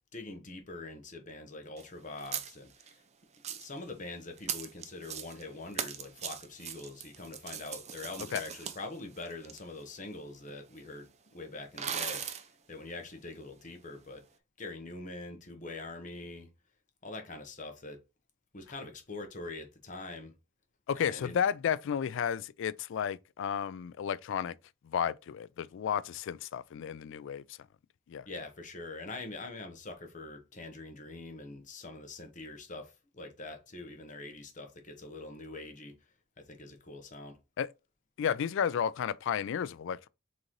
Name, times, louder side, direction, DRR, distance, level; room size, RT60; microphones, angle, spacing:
voice 1, 0.1-3.0 3.5-12.2 12.7-14.2 14.6-16.5 17.0-18.0 18.5-20.3 20.9-21.4 28.3-36.0 36.4-37.4, left 2 dB, 40° left, 1.0 m, -44 dB
sound 1, 1.8-1.9 2.2-2.9 3.3-3.8 4.4-5.5 5.7-9.6 10.5-10.6 10.8-10.9 11.8-12.5, right 8 dB, 35° right, 0.5 m, -39 dB
voice 2, 20.9-24.5 24.8-27.6 28.1-28.3 37.6-37.7 38.2-40.1, left 8 dB, 65° left, 0.3 m, -32 dB
3.9 x 3.8 x 3.1 m
head